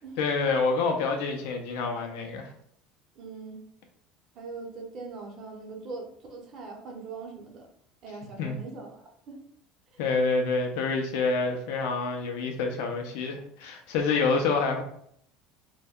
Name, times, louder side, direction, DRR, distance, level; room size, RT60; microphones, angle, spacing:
voice 1, 0.2-2.5 8.4-8.6 10.0-14.8, left 4 dB, 80° left, 3 dB, 0.4 m, -27 dB
voice 2, 3.2-3.6 4.3-7.7 8.0-9.4, right 4 dB, 45° right, 1 dB, 0.7 m, -41 dB
2.1 x 2.1 x 3.5 m, 0.68 s
cardioid pair, 145°, 0 cm